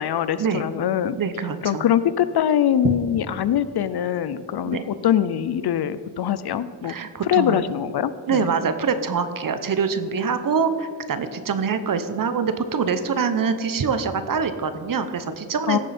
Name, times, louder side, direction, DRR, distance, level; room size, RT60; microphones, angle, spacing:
voice 1, 0.0-1.2 1.6-6.9 7.2-8.4 15.7-15.8, left 10 dB, 55° left, 14 dB, 0.5 m, -23 dB
voice 2, 1.2-1.9 2.8-2.9 4.7-4.8 6.8-7.6 8.3-15.8, right 5 dB, 45° right, 10 dB, 0.9 m, -24 dB
17.0 x 7.1 x 4.3 m, 2.1 s
cardioid pair, 100°, 46 cm